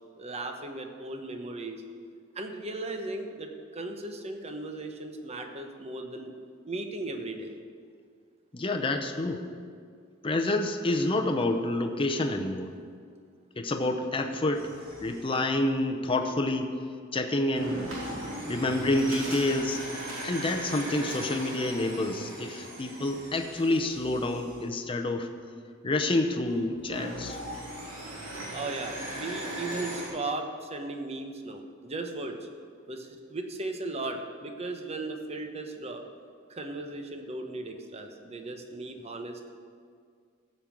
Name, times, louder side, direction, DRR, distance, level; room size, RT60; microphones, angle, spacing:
voice 1, 0.2-1.8 2.3-6.3 6.6-7.5 28.5-32.5 32.9-36.0 36.5-39.5, right 2 dB, 30° right, 4 dB, 1.0 m, -37 dB
voice 2, 8.5-9.4 10.2-12.7 13.6-14.7 15.0-16.7 17.1-17.8 18.5-19.8 20.2-25.3 25.8-27.4, left 2 dB, 25° left, 5 dB, 0.7 m, -28 dB
sound 1, 14.5-15.4 17.5-24.6 26.4-30.1, right 1 dB, 75° right, 3.8 m, -38 dB
14.5 x 5.4 x 7.5 m, 2.1 s
head